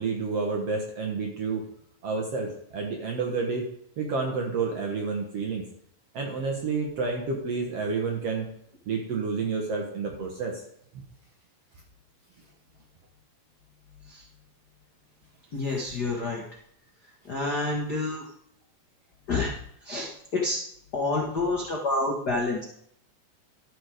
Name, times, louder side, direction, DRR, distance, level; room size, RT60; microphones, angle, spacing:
voice 1, 0.0-1.6 2.0-3.7 4.0-5.7 6.1-8.5 8.9-10.6, right 4 dB, 60° right, 1 dB, 1.7 m, -29 dB
voice 2, 15.5-16.4 17.2-18.3 19.3-19.5 19.8-20.6 20.9-22.6, left 2 dB, 60° left, -2 dB, 1.0 m, -28 dB
12.5 x 6.5 x 5.0 m, 0.69 s
omnidirectional pair, 4.2 m